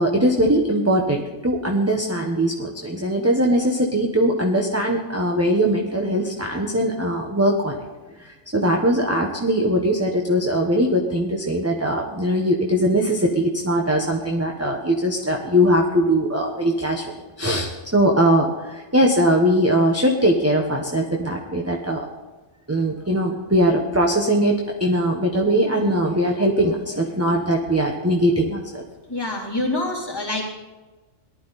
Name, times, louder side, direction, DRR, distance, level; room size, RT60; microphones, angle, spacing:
voice 1, 0.0-7.8 8.2-17.0 17.4-22.0 22.7-28.8, equal, 10° right, 1 dB, 1.1 m, -21 dB
voice 2, 29.1-30.4, left 2 dB, 15° left, -5 dB, 3.6 m, -26 dB
18.5 x 12.0 x 4.2 m, 1.2 s
omnidirectional pair, 1.4 m